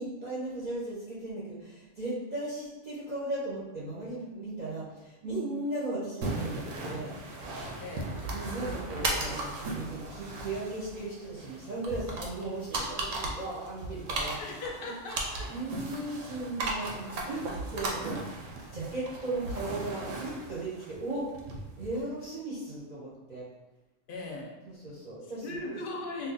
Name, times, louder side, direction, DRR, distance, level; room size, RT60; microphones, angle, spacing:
voice 1, 0.0-7.1 8.3-14.4 14.8-14.9 15.5-23.5 24.7-25.8, right 2 dB, 45° right, -8 dB, 0.7 m, -37 dB
sound 1, 6.2-22.0, right 2 dB, 80° right, 1.0 m, -37 dB
voice 2, 7.8-8.1 14.4-15.5 24.1-24.6 25.4-26.3, left 2 dB, 60° left, 1 dB, 0.6 m, -38 dB
2.6 x 2.2 x 3.9 m, 1.1 s
omnidirectional pair, 1.3 m